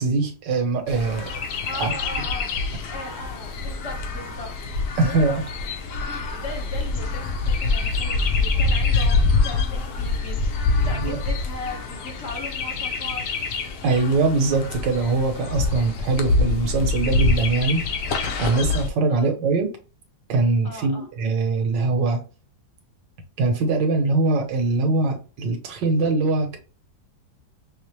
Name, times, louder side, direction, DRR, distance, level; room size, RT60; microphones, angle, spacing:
voice 1, 0.0-1.4 1.7-1.9 2.2-2.3 5.0-5.4 10.8-11.2 13.8-17.8 18.4-19.7 20.3-22.2 23.4-26.6, right 3 dB, 70° right, 1.5 m, -22 dB
Chirp tweet, 0.9-18.9, left 3 dB, 70° left, 1.3 m, -25 dB
voice 2, 1.6-2.5 2.9-4.5 4.8-5.4 6.0-13.2 19.1-19.3 20.6-21.1, left 2 dB, 45° left, 1.2 m, -38 dB
5.6 x 2.0 x 3.0 m
omnidirectional pair, 2.0 m